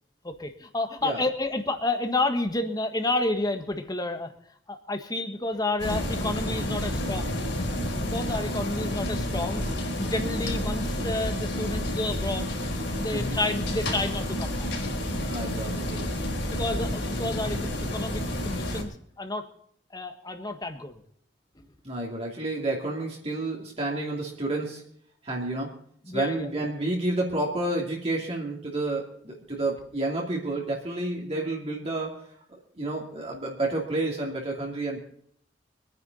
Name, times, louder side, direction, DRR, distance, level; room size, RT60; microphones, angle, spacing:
voice 1, 0.2-4.3 4.7-7.4 8.0-9.6 9.9-12.5 13.0-14.7 16.5-19.4 19.9-21.0 21.6-21.7 26.0-26.6, left 2 dB, 20° left, 7 dB, 1.6 m, -30 dB
sound 1, 5.8-18.8, left 1 dB, 65° left, 4.0 m, -30 dB
voice 2, 15.2-16.2 21.8-24.8 25.2-25.7 26.1-32.2 32.5-35.0, right 2 dB, 35° right, -2 dB, 2.6 m, -30 dB
25.0 x 9.8 x 4.1 m, 0.65 s
head